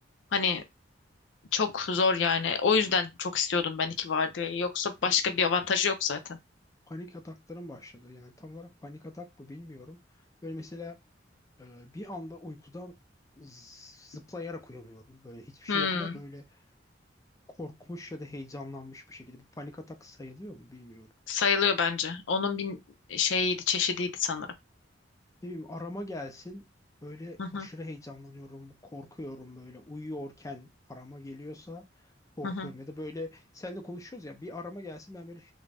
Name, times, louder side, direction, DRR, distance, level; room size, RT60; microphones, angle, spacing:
voice 1, 0.3-0.6 1.5-6.4 15.7-16.2 21.3-22.8 23.1-24.5 27.4-27.7 32.4-32.7, left 5 dB, 80° left, 0.5 m, -27 dB
voice 2, 5.0-5.4 6.9-10.0 10.4-11.0 11.6-12.9 13.4-16.6 17.6-21.1 25.4-26.7 27.0-32.1 32.4-35.5, left 1 dB, 15° left, 0.4 m, -42 dB
2.5 x 2.1 x 3.3 m
head